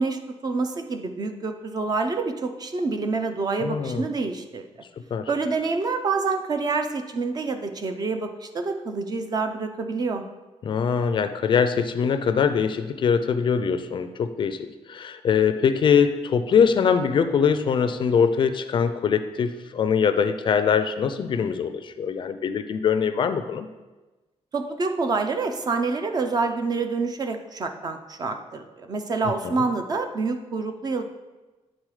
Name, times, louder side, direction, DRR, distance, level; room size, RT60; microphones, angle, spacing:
voice 1, 0.0-4.7 5.3-10.2 24.5-31.0, right 4 dB, 35° right, 6 dB, 0.5 m, -27 dB
voice 2, 3.6-4.1 5.1-5.3 10.6-23.7 29.3-29.6, left 6 dB, 45° left, 10 dB, 0.4 m, -23 dB
9.0 x 3.8 x 4.8 m, 1.2 s
wide cardioid pair, 165°, 11 cm